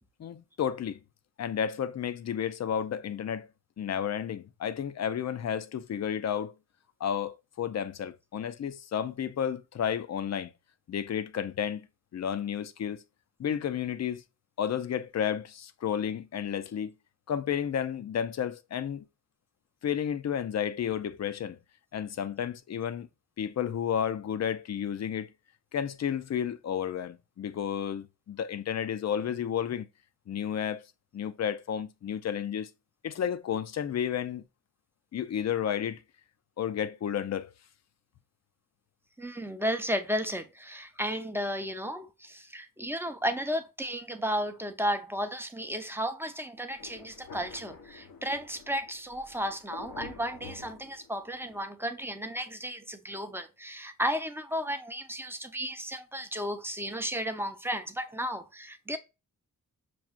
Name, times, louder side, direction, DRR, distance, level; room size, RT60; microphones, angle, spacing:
voice 1, 0.2-1.0 1.4-3.5 3.8-6.5 7.0-10.5 10.9-11.9 12.1-13.0 13.4-14.2 14.6-16.9 17.3-19.0 19.8-21.6 21.9-23.1 23.4-25.3 25.7-29.9 30.3-30.8 31.1-32.7 33.0-34.4 35.1-36.0 36.6-37.5, left 8 dB, 50° left, 0.5 m, -32 dB
voice 2, 39.2-59.0, equal, 5° right, 0.6 m, -33 dB
Thunder, 46.8-51.6, left 4 dB, 90° left, 1.0 m, -48 dB
6.0 x 2.3 x 2.3 m
cardioid pair, 80°, 34 cm